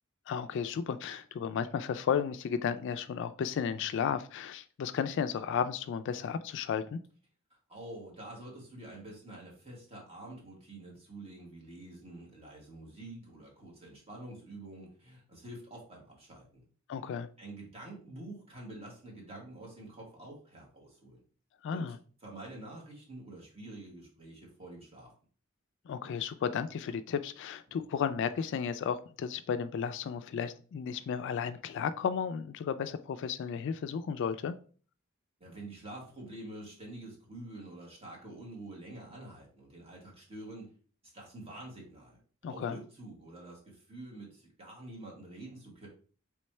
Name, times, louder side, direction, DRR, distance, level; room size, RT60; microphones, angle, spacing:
voice 1, 0.3-7.0 16.9-17.3 21.6-22.0 25.9-34.5 42.4-42.8, left 7 dB, 60° left, 0.3 m, -33 dB
voice 2, 7.7-16.6 17.4-21.2 21.7-21.9 22.2-25.1 27.7-27.8 35.4-40.7 41.0-42.2 42.5-45.9, right 1 dB, 30° right, 1.7 m, -47 dB
3.5 x 3.1 x 4.4 m
head